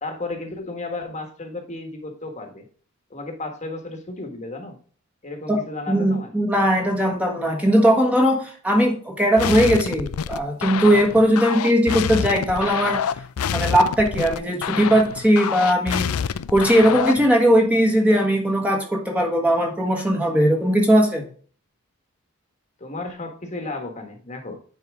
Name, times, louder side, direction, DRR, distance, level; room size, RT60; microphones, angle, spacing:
voice 1, 0.0-2.6 3.1-4.8 5.2-6.3 22.8-24.6, left 2 dB, 30° left, 5 dB, 1.4 m, -33 dB
voice 2, 5.9-13.0 13.5-16.1 16.5-21.2, equal, 5° right, 1 dB, 1.3 m, -19 dB
sound 1, 9.4-17.3, left 7 dB, 80° left, 0.4 m, -27 dB
9.7 x 4.5 x 3.6 m, 0.43 s
head